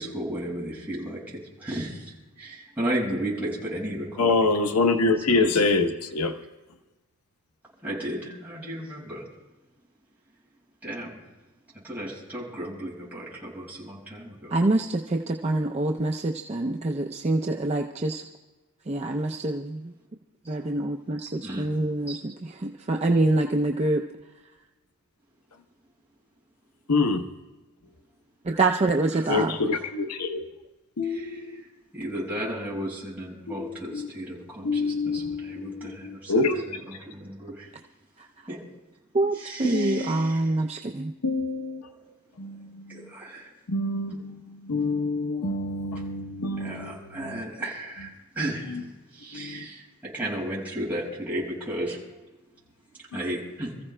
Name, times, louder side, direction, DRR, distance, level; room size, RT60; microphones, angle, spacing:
voice 1, 0.0-4.5 5.3-5.6 7.8-9.2 10.8-11.2 11.8-14.5 20.4-20.5 21.4-21.7 22.1-22.2 29.1-29.8 31.0-31.7 31.9-37.7 38.5-38.6 39.3-40.6 41.9-42.0 42.9-43.5 46.6-48.8 49.1-52.0 53.1-53.7, right 1 dB, 10° right, 6.3 m, -34 dB
voice 2, 4.2-6.3 26.9-27.2 29.3-30.5 31.0-31.4 33.6-34.1 34.6-36.6 39.7-40.3 41.2-41.8 42.4-43.1 43.7-47.0 47.2-47.4 49.3-49.7, left 3 dB, 90° left, 0.9 m, -26 dB
voice 3, 14.5-18.2 18.9-19.9 20.5-24.0 28.4-29.6 39.1-41.1, right 2 dB, 30° right, 0.5 m, -26 dB
29.5 x 15.0 x 2.2 m
head